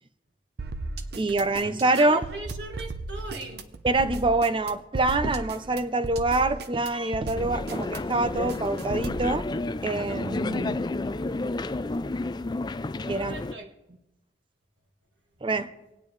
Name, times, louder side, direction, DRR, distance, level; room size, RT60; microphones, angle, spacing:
sound 1, 0.6-9.3, right 2 dB, 65° right, 0.7 m, -36 dB
voice 1, 1.2-2.2 3.8-9.5 9.8-10.8 13.1-13.4 15.4-15.7, right 2 dB, 30° right, 11 dB, 0.6 m, -25 dB
voice 2, 2.0-3.7 13.1-13.7, right 2 dB, 90° right, 2 dB, 1.7 m, -39 dB
sound 2, 7.4-13.5, left 2 dB, 25° left, 0.4 m, -31 dB
26.0 x 9.0 x 3.2 m, 0.95 s
head